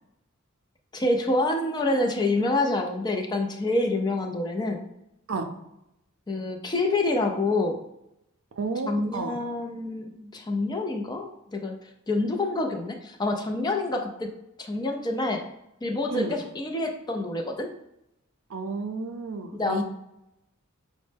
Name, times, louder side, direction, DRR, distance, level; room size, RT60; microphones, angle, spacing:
voice 1, 0.9-4.8 6.3-7.8 8.9-11.8 12.1-14.3 14.6-15.4 15.8-17.7 19.5-19.8, left 2 dB, 20° left, 2 dB, 0.4 m, -27 dB
voice 2, 8.6-9.4 16.1-16.4 18.5-19.8, right 4 dB, 65° right, 5 dB, 0.5 m, -31 dB
5.2 x 2.1 x 3.3 m, 0.85 s
head